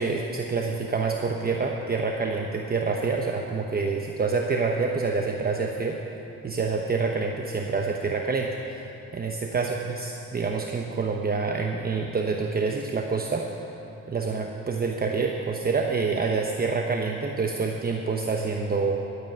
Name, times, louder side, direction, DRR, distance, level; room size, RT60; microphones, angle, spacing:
voice 1, 0.0-6.0 6.4-8.8 9.1-13.5 14.1-19.0, right 4 dB, 30° right, 2 dB, 0.9 m, -27 dB
13.0 x 8.3 x 9.3 m, 2.9 s
cardioid pair, 90°, 30 cm